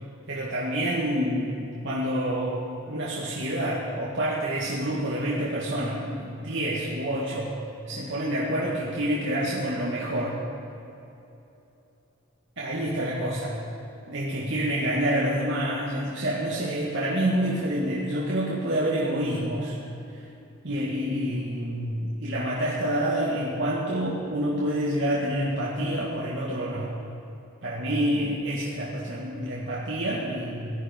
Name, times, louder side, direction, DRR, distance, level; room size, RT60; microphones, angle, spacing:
voice 1, 0.3-7.5 7.9-10.4 12.6-13.6 14.1-19.8 20.1-20.2 20.6-27.0 27.6-30.8, right 1 dB, 65° right, -6 dB, 2.1 m, -28 dB
18.5 x 12.5 x 5.4 m, 2.9 s
head